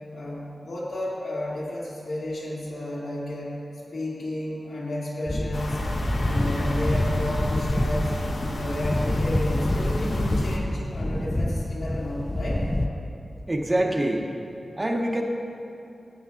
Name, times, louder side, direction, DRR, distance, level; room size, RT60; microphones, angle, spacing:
voice 1, 0.1-3.5 3.9-5.8 6.2-8.2 8.6-12.7, left 1 dB, 85° left, -7 dB, 2.1 m, -32 dB
sound 1, 5.3-12.9, left 1 dB, 15° left, 0.3 m, -27 dB
sound 2, 5.5-10.6, left 1 dB, 70° left, 0.9 m, -30 dB
voice 2, 13.5-14.2 14.8-15.2, right 1 dB, 20° right, 2 dB, 0.6 m, -24 dB
15.0 x 8.1 x 2.4 m, 2.7 s
wide cardioid pair, 110°, 0 cm